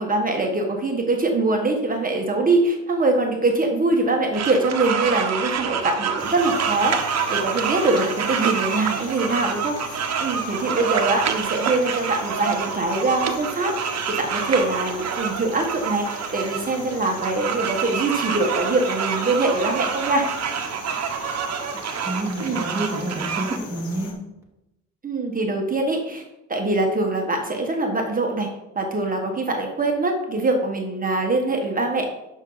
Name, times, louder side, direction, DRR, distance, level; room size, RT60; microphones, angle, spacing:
voice 1, 0.0-20.3 22.4-22.6 25.0-26.2 26.5-28.5 28.7-32.1, right 2 dB, 30° right, 1 dB, 1.6 m, -23 dB
sound 1, 4.3-23.6, right 7 dB, 60° right, 1.2 m, -27 dB
sound 2, 6.2-24.1, left 4 dB, 85° left, 2.0 m, -40 dB
voice 2, 22.0-24.1, right 1 dB, 10° right, -3 dB, 2.5 m, -28 dB
11.0 x 6.4 x 4.0 m, 0.91 s
cardioid pair, 90°, 30 cm